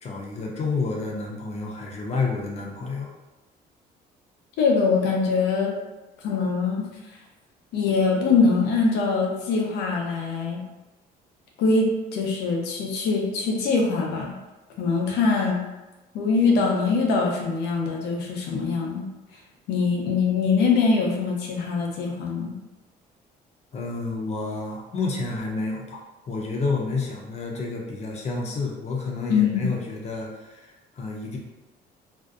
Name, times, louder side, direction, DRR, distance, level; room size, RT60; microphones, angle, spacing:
voice 1, 0.0-3.1 23.7-26.0 26.3-31.4, left 3 dB, 40° left, -1 dB, 0.6 m, -30 dB
voice 2, 4.6-5.7 6.2-6.9 7.7-10.6 11.6-14.4 14.8-15.6 16.1-19.1 19.7-22.5 29.3-29.7, left 4 dB, 85° left, 0 dB, 0.6 m, -23 dB
2.6 x 2.1 x 2.4 m, 1.1 s
cardioid pair, 110°, 17 cm